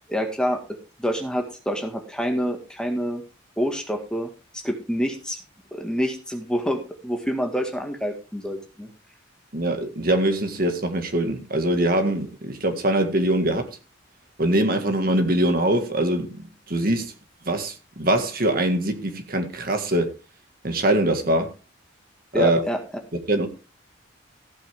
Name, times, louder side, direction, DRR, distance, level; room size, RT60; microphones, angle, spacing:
voice 1, 0.1-0.6 1.0-3.2 3.6-4.3 4.5-5.4 5.7-8.9 22.3-22.8, equal, 5° left, 1.8 m, -27 dB
voice 2, 9.5-13.7 14.4-17.1 17.5-20.1 20.6-21.5 22.3-22.6 23.3-23.5, right 1 dB, 45° right, 1.9 m, -23 dB
15.0 x 8.9 x 3.6 m
head